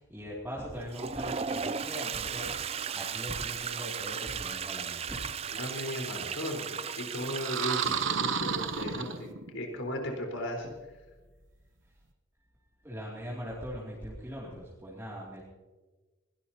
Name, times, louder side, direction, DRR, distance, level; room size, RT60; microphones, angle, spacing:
voice 1, 0.0-5.2 12.8-15.4, equal, 10° right, -6 dB, 2.7 m, -40 dB
Toilet flush, 0.8-8.4, right 7 dB, 30° right, 0.4 m, -36 dB
voice 2, 5.5-10.7, left 1 dB, 80° left, 1 dB, 4.3 m, -36 dB
sound 1, 7.4-9.6, right 6 dB, 70° right, 1.0 m, -31 dB
21.5 x 18.0 x 2.9 m, 1.3 s
head